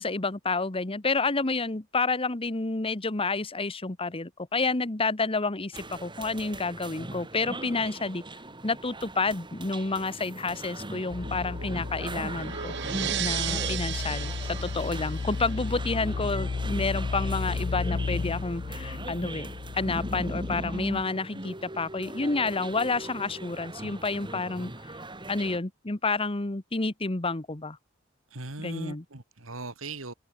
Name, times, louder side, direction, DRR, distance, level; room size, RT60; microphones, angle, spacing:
voice 1, 0.0-8.2 8.6-12.7 13.2-25.0 25.3-27.8 28.6-29.0, left 3 dB, 30° left, 1.2 m, -29 dB
sound 1, 5.7-25.6, right 1 dB, 25° right, 6.6 m, -40 dB
sound 2, 11.0-16.1, right 11 dB, 60° right, 0.7 m, -36 dB
sound 3, 11.1-21.0, left 4 dB, 55° left, 0.5 m, -34 dB
voice 2, 28.3-30.1, right 3 dB, 90° right, 3.0 m, -39 dB
head